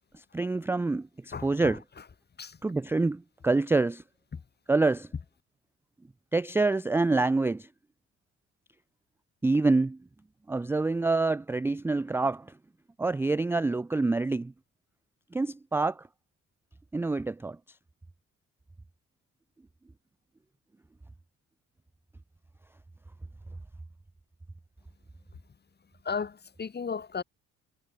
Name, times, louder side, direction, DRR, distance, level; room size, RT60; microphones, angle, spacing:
voice 1, 0.1-1.8 2.6-4.0 4.7-5.1 6.3-7.7 9.4-10.0 10.5-12.6 13.0-14.5 15.3-16.1 16.9-17.6, right 3 dB, 10° right, 0.3 m, -26 dB
voice 2, 1.3-1.8 2.4-2.6 4.3-4.4 26.0-27.2, left 5 dB, 35° left, 2.0 m, -35 dB
cardioid pair, 90°, 30 cm